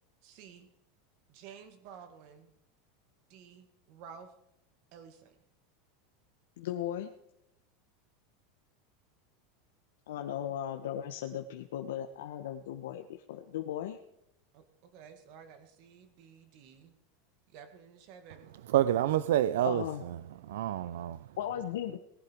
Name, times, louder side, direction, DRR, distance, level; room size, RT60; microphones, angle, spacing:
voice 1, 0.2-0.7 1.3-2.5 3.3-4.3 4.9-5.4 10.3-10.4 14.5-16.9 17.5-18.5, right 7 dB, 40° right, 2.0 m, -52 dB
voice 2, 6.6-7.1 10.1-14.0 19.6-20.0 21.4-22.0, left 10 dB, 90° left, 1.1 m, -37 dB
voice 3, 18.7-20.2 20.4-21.2, right 12 dB, 85° right, 0.5 m, -28 dB
19.0 x 11.5 x 4.6 m
supercardioid pair, 180°, 0 cm